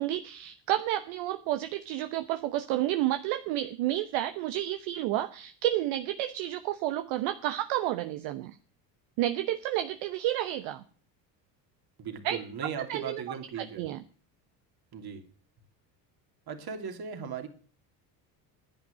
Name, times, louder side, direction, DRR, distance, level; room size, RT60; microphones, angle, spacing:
voice 1, 0.0-8.6 9.2-10.8 12.2-12.4 12.9-14.0, right 13 dB, 70° right, 9 dB, 1.1 m, -30 dB
voice 2, 12.0-13.8 14.9-15.2 16.5-17.5, right 7 dB, 45° right, 5 dB, 3.0 m, -37 dB
10.5 x 8.6 x 9.6 m, 0.43 s
hypercardioid pair, 70°, 50 cm